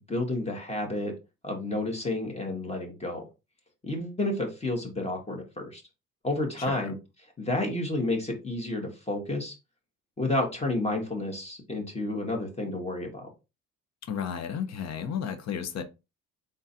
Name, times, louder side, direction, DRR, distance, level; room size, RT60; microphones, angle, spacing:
voice 1, 0.1-1.1 1.4-3.3 3.8-5.8 6.2-6.9 7.4-9.5 10.2-13.3, left 2 dB, 20° left, 1.8 m, -30 dB
voice 2, 14.1-15.8, left 7 dB, 60° left, 0.8 m, -33 dB
3.9 x 3.8 x 2.7 m
cardioid pair, 90°, 30 cm